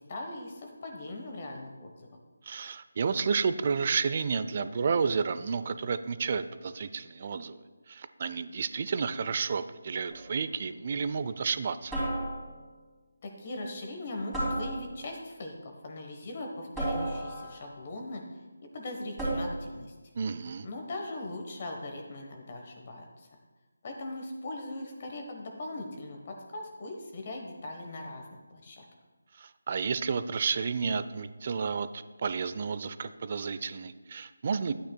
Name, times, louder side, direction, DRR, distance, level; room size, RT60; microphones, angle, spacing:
voice 1, 0.0-2.1 13.2-18.2 18.7-19.9 20.6-23.3 23.8-28.3 28.6-28.8, left 2 dB, 35° left, 2 dB, 1.1 m, -40 dB
voice 2, 2.4-7.6 7.9-12.0 20.2-20.7 29.4-34.7, right 5 dB, 40° right, 13 dB, 0.4 m, -31 dB
sound 1, 10.1-10.4 11.9-12.7 14.3-15.2 16.8-17.7 19.2-19.8, right 1 dB, 5° right, 2.8 m, -33 dB
11.5 x 8.8 x 2.2 m, 1.3 s
figure-of-eight pair, 160°, 0 cm